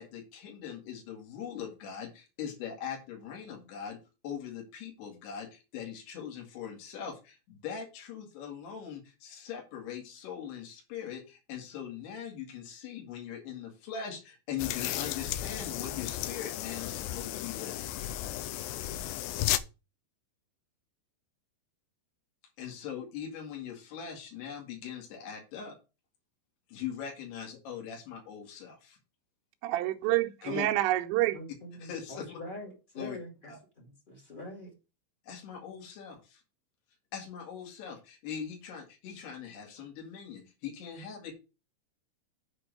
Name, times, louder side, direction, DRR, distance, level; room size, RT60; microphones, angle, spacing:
voice 1, 0.0-4.0 4.2-17.9 22.6-25.8 26.7-29.0 30.4-30.7 31.8-32.4 33.0-33.2 33.5-33.6 35.2-36.4 37.1-41.3, left 8 dB, 65° left, 4.2 m, -41 dB
sound 1, 14.6-19.6, left 14 dB, 85° left, 2.5 m, -34 dB
voice 2, 29.6-31.4, right 16 dB, 80° right, 3.0 m, -28 dB
voice 3, 31.3-34.7, left 1 dB, 25° left, 1.0 m, -45 dB
8.0 x 4.4 x 6.5 m
omnidirectional pair, 5.3 m